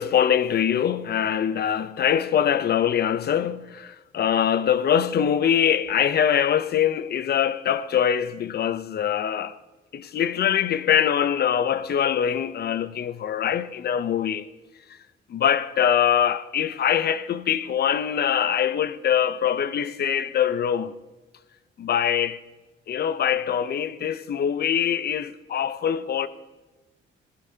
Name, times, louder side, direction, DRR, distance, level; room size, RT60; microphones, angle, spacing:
voice 1, 0.0-9.6 9.9-14.5 15.3-20.9 21.8-22.4 22.9-26.3, left 9 dB, 55° left, 0.7 m, -23 dB
19.5 x 15.0 x 2.8 m
cardioid pair, 90°, 20 cm